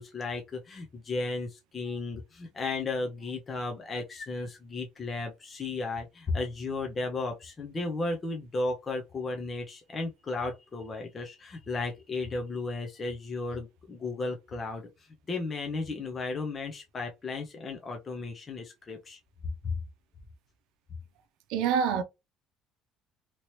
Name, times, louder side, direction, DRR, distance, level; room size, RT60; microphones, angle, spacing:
voice 1, 0.0-14.9 15.3-19.2 19.6-19.8, left 3 dB, 25° left, 0.7 m, -34 dB
voice 2, 21.5-22.0, right 7 dB, 85° right, 0.6 m, -25 dB
3.0 x 2.8 x 3.0 m
cardioid pair, 145°, 0 cm